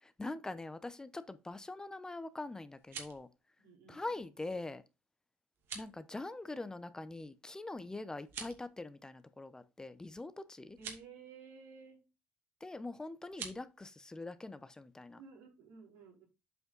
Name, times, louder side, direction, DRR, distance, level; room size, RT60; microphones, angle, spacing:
voice 1, 0.0-3.3 3.9-4.8 5.7-10.8 12.6-15.2, left 2 dB, 15° left, 0.7 m, -43 dB
sound 1, 2.7-3.3 5.5-5.9 8.2-8.7 10.7-11.0 13.3-13.6, right 6 dB, 70° right, 2.4 m, -46 dB
voice 2, 3.6-4.1 10.8-12.0 15.2-16.2, right 5 dB, 90° right, 4.0 m, -54 dB
8.0 x 4.9 x 3.9 m
supercardioid pair, 80°, 4 cm